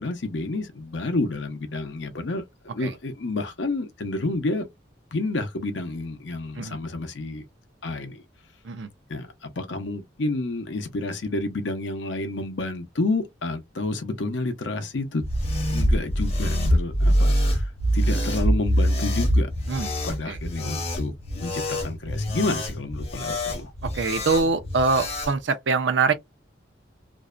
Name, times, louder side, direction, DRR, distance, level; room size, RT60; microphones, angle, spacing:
voice 1, 0.0-4.7 5.1-7.4 7.8-8.2 9.1-15.2 15.7-19.5 20.0-23.7, left 2 dB, 75° left, 0.7 m, -30 dB
sound 1, 15.2-25.3, equal, 35° left, 0.8 m, -24 dB
voice 2, 23.9-26.1, right 4 dB, 75° right, 0.6 m, -23 dB
2.6 x 2.1 x 2.4 m
head